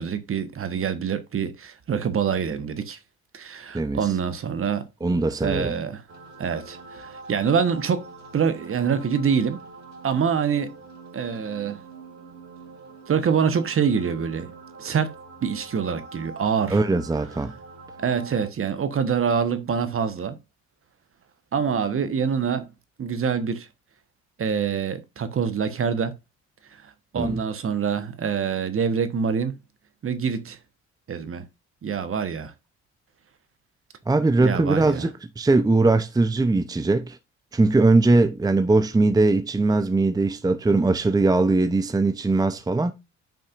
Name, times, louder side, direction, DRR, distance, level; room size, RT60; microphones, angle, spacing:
voice 1, 0.0-3.0 3.3-4.9 5.4-6.0 6.4-8.0 8.3-9.6 10.0-10.7 11.1-11.8 13.1-14.5 14.8-15.1 15.4-16.8 18.0-20.4 21.5-22.7 23.0-23.7 24.4-26.1 26.8-29.6 30.0-30.6 31.1-31.4 31.8-32.5 34.4-35.1, right 6 dB, 40° right, 1.2 m, -25 dB
voice 2, 3.7-4.1 5.0-5.7 16.7-17.5 27.2-27.4 34.1-35.1 35.4-37.2 37.5-42.9, right 2 dB, 10° right, 0.7 m, -20 dB
sound 1, 6.1-18.5, right 3 dB, 55° right, 2.7 m, -44 dB
9.1 x 5.3 x 2.5 m
hypercardioid pair, 55°, 33 cm